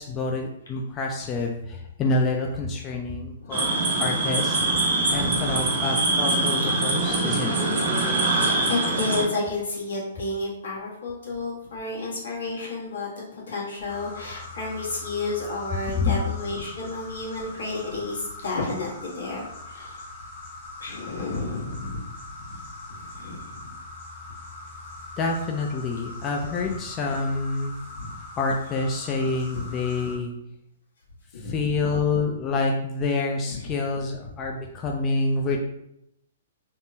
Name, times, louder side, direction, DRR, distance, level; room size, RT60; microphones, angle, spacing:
voice 1, 0.0-3.7 4.0-4.6 5.1-7.6 16.0-16.2 25.2-27.7 28.4-30.3 31.4-35.6, left 3 dB, 25° left, 0 dB, 0.3 m, -27 dB
sound 1, 3.5-9.2, right 2 dB, 75° right, 1.3 m, -23 dB
voice 2, 5.1-5.8 7.0-7.4 8.3-20.0 20.8-22.1 22.5-22.6 22.9-23.7 26.6-26.8 27.9-28.2 29.5-29.7 31.3-31.7 33.5-33.7, left 3 dB, 80° left, -5 dB, 1.3 m, -32 dB
sound 2, 13.9-30.2, left 2 dB, 45° left, 1.3 m, -42 dB
3.5 x 2.0 x 2.7 m, 0.79 s
hypercardioid pair, 135°, 0 cm